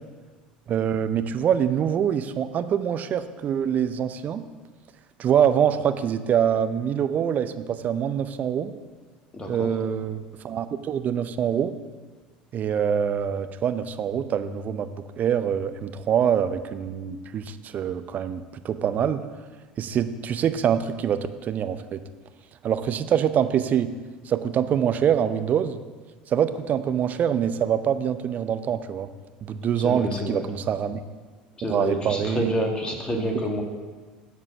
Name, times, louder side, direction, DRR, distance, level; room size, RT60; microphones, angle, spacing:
voice 1, 0.7-4.4 5.2-8.7 9.5-11.7 12.5-14.9 15.2-19.2 19.8-22.0 22.6-23.9 24.3-25.8 26.3-29.1 29.5-31.0 31.7-32.5 33.1-33.2, right 8 dB, 35° right, 10 dB, 0.7 m, -25 dB
voice 2, 9.3-9.7 29.8-30.4 31.6-33.6, equal, 20° left, 2 dB, 2.0 m, -28 dB
12.5 x 4.8 x 7.0 m, 1.4 s
figure-of-eight pair, 70°, 5 cm